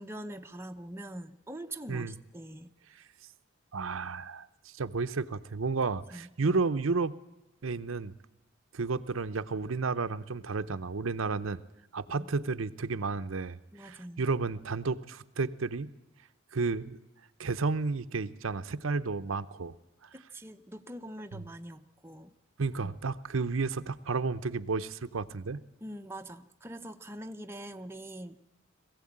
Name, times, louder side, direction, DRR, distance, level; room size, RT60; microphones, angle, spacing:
voice 1, 0.0-2.7 6.1-6.6 12.2-12.3 13.7-14.3 20.1-22.3 22.8-22.9 25.8-28.4, right 1 dB, 10° right, 5 dB, 0.7 m, -43 dB
voice 2, 3.7-7.2 7.6-8.1 8.7-11.6 11.9-15.9 16.5-17.0 17.4-19.7 21.3-21.4 22.6-25.6, right 4 dB, 80° right, 11 dB, 0.7 m, -32 dB
21.5 x 15.5 x 8.7 m, 0.93 s
head